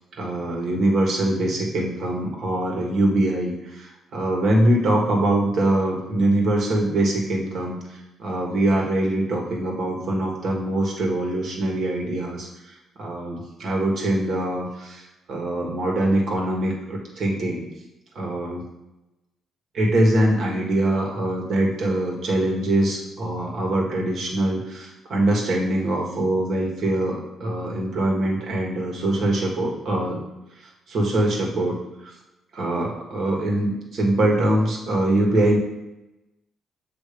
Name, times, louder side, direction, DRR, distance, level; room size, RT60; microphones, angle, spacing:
voice 1, 0.2-7.8 8.2-12.5 13.0-15.0 15.3-17.6 18.1-18.6 19.7-30.2 30.9-31.7 32.0-32.1 32.5-35.6, right 1 dB, 65° right, -1 dB, 1.6 m, -23 dB
7.1 x 3.0 x 5.1 m, 0.95 s
cardioid pair, 90°, 0 cm